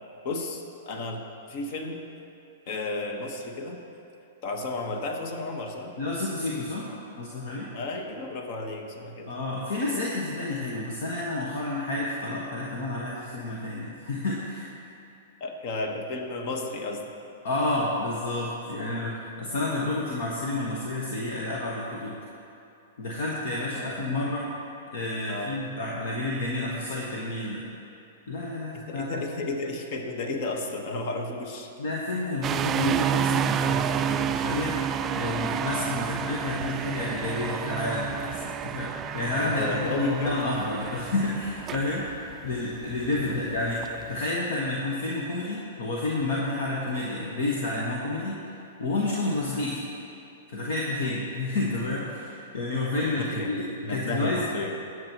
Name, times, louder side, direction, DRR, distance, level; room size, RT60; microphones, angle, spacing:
voice 1, 0.2-1.2 1.5-2.0 2.7-3.8 4.4-5.9 7.7-9.3 15.4-17.1 18.9-19.2 19.5-20.0 23.7-24.2 25.3-25.6 28.7-31.7 39.3-40.4 43.3-43.4 53.3-53.5 53.8-54.8, left 2 dB, 50° left, 3 dB, 1.4 m, -33 dB
voice 2, 6.0-6.9 7.2-7.7 9.3-14.7 17.4-22.2 23.0-24.5 24.9-27.6 28.3-29.1 31.8-34.8 35.1-42.0 42.4-43.8 44.1-48.4 48.8-49.8 50.5-54.4, left 2 dB, 65° left, -4 dB, 1.5 m, -30 dB
sound 1, 32.4-44.2, right 8 dB, 25° right, 0.3 m, -30 dB
21.0 x 7.7 x 3.1 m, 2.9 s
hypercardioid pair, 115°, 0 cm